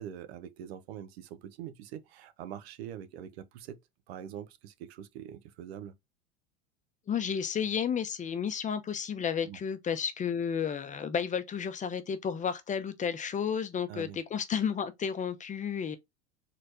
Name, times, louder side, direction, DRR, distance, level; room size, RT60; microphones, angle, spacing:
voice 1, 0.0-3.8 4.1-5.9 9.4-9.6 13.9-14.2, right 10 dB, 80° right, 0.9 m, -44 dB
voice 2, 7.1-16.0, left 7 dB, 25° left, 0.7 m, -32 dB
4.2 x 3.2 x 2.6 m
supercardioid pair, 110°, 31 cm